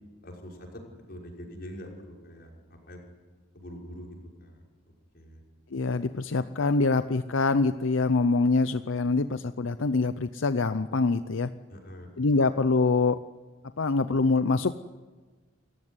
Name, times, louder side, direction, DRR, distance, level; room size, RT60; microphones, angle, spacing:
voice 1, 0.2-0.8 1.1-2.5 2.9-3.1 3.5-4.6 5.1-5.4 11.7-12.4, equal, 55° left, -1 dB, 5.8 m, -44 dB
voice 2, 5.7-11.5 12.2-13.2 13.8-14.7, left 3 dB, 85° left, 12 dB, 0.7 m, -25 dB
29.0 x 15.0 x 9.8 m, 1.4 s
head